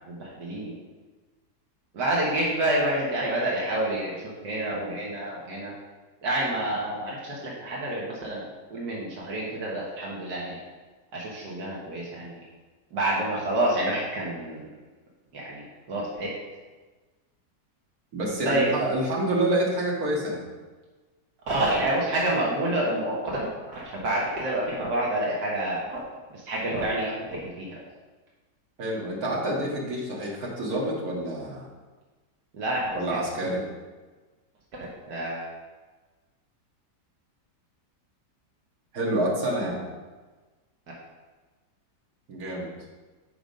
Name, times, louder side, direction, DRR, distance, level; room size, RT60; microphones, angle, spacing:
voice 1, 0.1-0.7 1.9-4.2 4.4-5.7 6.2-8.4 8.7-10.6 11.1-12.4 12.9-14.7 15.3-16.3 18.4-18.7 21.5-26.0 26.3-27.8 32.6-32.9 33.4-33.6 34.8-35.5, right 1 dB, 80° right, -4 dB, 1.8 m, -28 dB
voice 2, 18.1-20.4 28.8-31.7 32.9-33.6 38.9-39.8 42.3-42.7, right 1 dB, 60° right, -3 dB, 2.2 m, -27 dB
8.0 x 5.0 x 5.2 m, 1.3 s
omnidirectional pair, 1.8 m